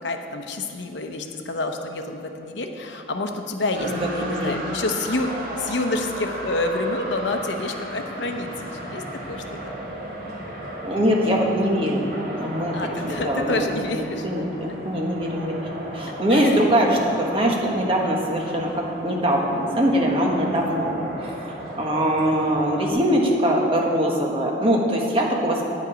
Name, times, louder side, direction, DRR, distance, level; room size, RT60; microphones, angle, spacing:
voice 1, 0.0-9.7 12.7-14.3 14.7-14.8 16.3-17.1, left 2 dB, 65° left, 5 dB, 0.8 m, -28 dB
sound 1, 3.7-22.9, right 1 dB, 50° right, 2.8 m, -35 dB
voice 2, 3.9-4.5 10.8-12.7 13.0-15.6 15.9-25.6, equal, 30° right, -1 dB, 1.4 m, -22 dB
10.5 x 9.3 x 5.1 m, 2.6 s
head